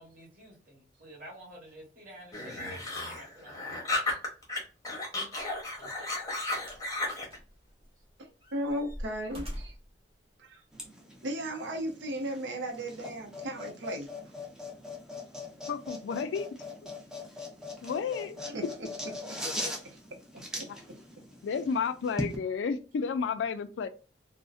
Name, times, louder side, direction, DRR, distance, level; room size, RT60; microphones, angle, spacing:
voice 1, 0.0-3.9, equal, 50° right, 1.2 m, -50 dB
sound 1, 2.3-4.6 4.8-7.4, left 2 dB, 20° left, 0.8 m, -34 dB
sound 2, 5.4-5.6 6.6-6.9 7.3-8.0 8.4-9.9 10.8-10.9, equal, 35° right, 0.8 m, -43 dB
voice 2, 5.7-6.1 8.2-9.8 10.4-10.6 11.2-14.1 18.4-19.1 19.5-19.6 20.3-20.4 20.9-21.0, right 1 dB, 85° right, 0.6 m, -36 dB
sound 3, 10.7-22.4, left 1 dB, 5° right, 0.5 m, -41 dB
voice 3, 15.7-16.5 17.8-18.4 20.7-20.8 21.4-23.9, left 6 dB, 85° left, 0.3 m, -32 dB
2.5 x 2.0 x 2.4 m
head